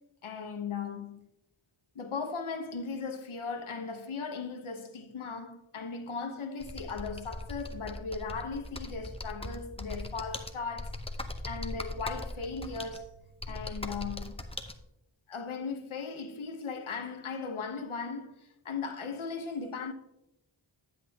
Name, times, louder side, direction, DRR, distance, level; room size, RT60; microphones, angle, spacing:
voice 1, 0.2-1.2 1.9-11.0 11.5-13.1 13.5-14.3 15.3-19.9, left 5 dB, 80° left, 1.0 m, -37 dB
Computer keyboard, 6.6-14.7, left 1 dB, 10° left, 0.7 m, -40 dB
9.6 x 8.3 x 2.8 m
wide cardioid pair, 60°, 48 cm